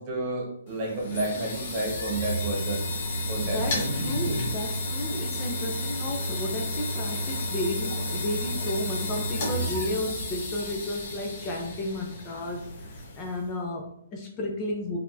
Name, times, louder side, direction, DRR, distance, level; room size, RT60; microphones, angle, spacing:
voice 1, 0.0-2.9 3.3-3.8, right 2 dB, 35° right, -2 dB, 1.6 m, -30 dB
sound 1, 0.7-13.5, left 1 dB, 45° left, 1.3 m, -32 dB
voice 2, 3.4-15.0, left 1 dB, 25° left, 1 dB, 0.7 m, -33 dB
4.4 x 3.5 x 2.7 m, 0.73 s
hypercardioid pair, 140°, 0 cm